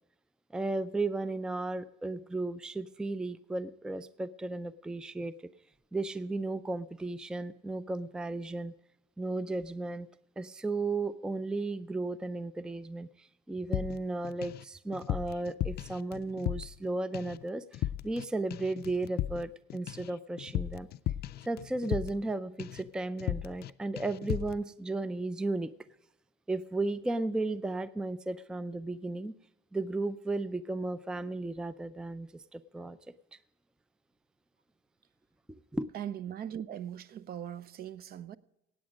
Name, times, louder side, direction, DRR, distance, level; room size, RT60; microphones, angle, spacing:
voice 1, 0.5-5.3 5.9-8.7 9.2-10.1 10.4-20.9 21.4-25.7 26.5-29.3 29.7-33.0 35.5-35.9, right 2 dB, 5° right, 0.4 m, -34 dB
sound 1, 13.7-14.6 14.9-16.9 17.1-17.4 17.7-18.3 18.5-22.3 22.6-22.9 23.2-23.7 24.0-24.6, left 13 dB, 55° left, 0.5 m, -36 dB
voice 2, 35.9-38.4, right 9 dB, 50° right, 0.6 m, -40 dB
17.0 x 8.7 x 5.0 m
cardioid pair, 125°, 20 cm